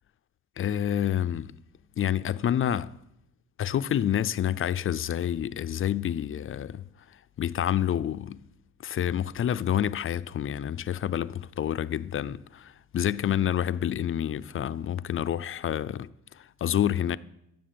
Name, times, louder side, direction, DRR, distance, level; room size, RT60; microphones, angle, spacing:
voice 1, 0.6-1.6 2.0-3.0 3.6-6.9 7.4-8.4 8.8-17.2, left 10 dB, 45° left, 0.5 m, -28 dB
15.5 x 7.3 x 7.7 m
cardioid pair, 90°, 30 cm